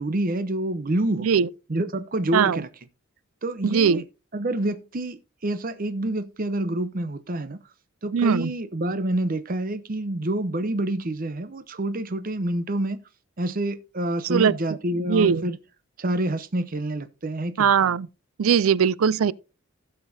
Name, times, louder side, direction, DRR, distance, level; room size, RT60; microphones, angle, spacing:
voice 1, 0.0-1.3 1.7-2.7 3.4-4.0 4.3-7.6 8.0-13.0 13.4-15.6 16.0-17.7, right 1 dB, 40° right, 0.7 m, -27 dB
voice 2, 3.6-4.0 8.1-8.5 14.3-14.5 15.0-15.5 17.6-18.1 18.4-19.3, right 7 dB, 75° right, 0.4 m, -20 dB
16.0 x 6.7 x 2.7 m
head